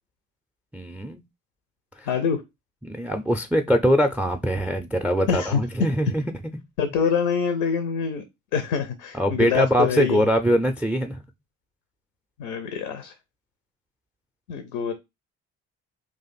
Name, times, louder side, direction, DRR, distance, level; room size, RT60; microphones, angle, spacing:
voice 1, 0.7-1.2 2.8-6.2 9.1-11.2, equal, 5° right, 0.3 m, -22 dB
voice 2, 2.1-2.4 5.3-5.6 6.8-8.2 8.5-10.3 12.4-13.1 14.5-14.9, left 6 dB, 75° left, 0.6 m, -25 dB
2.5 x 2.4 x 4.0 m
hypercardioid pair, 50°, 40 cm